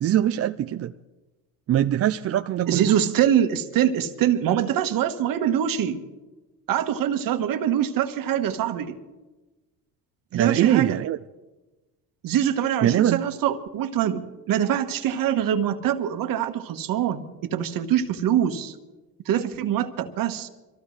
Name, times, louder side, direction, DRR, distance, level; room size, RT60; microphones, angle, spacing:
voice 1, 0.0-0.9 1.7-2.9 10.3-11.2 12.8-13.2, right 11 dB, 40° right, 9 dB, 0.5 m, -22 dB
voice 2, 2.7-6.0 6.7-9.0 10.3-11.0 12.2-18.7 19.2-20.5, right 10 dB, 60° right, 8 dB, 1.5 m, -24 dB
24.5 x 15.0 x 3.3 m, 1.1 s
supercardioid pair, 95°, 38 cm